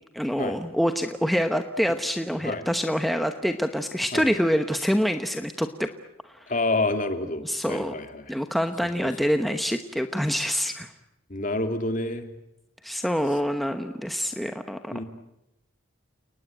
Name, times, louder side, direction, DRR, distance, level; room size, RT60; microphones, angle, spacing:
voice 1, 0.1-5.9 6.3-6.6 7.2-7.9 8.3-10.9 12.8-15.0, equal, ahead, 7 dB, 1.0 m, -26 dB
voice 2, 6.5-8.3 11.3-12.3 14.9-15.0, left 2 dB, 40° left, 7 dB, 2.7 m, -28 dB
30.0 x 19.5 x 9.2 m, 0.89 s
head